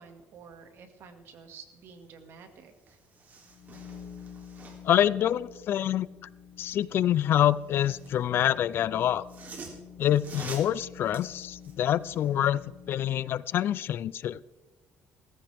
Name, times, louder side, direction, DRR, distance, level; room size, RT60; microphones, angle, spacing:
voice 1, 0.0-3.0, right 6 dB, 60° right, 6 dB, 2.0 m, -50 dB
sound 1, 2.4-2.5 2.8-5.0 7.1-8.2 9.0-12.4 12.8-12.9, right 4 dB, 40° right, 3.0 m, -47 dB
sound 2, 3.4-13.2, left 7 dB, 70° left, 4.0 m, -49 dB
voice 2, 4.8-6.1 6.6-9.3 10.0-12.6 12.9-14.4, left 11 dB, 55° left, 19 dB, 0.4 m, -26 dB
17.5 x 15.0 x 3.5 m, 1.1 s
cardioid pair, 135°, 5 cm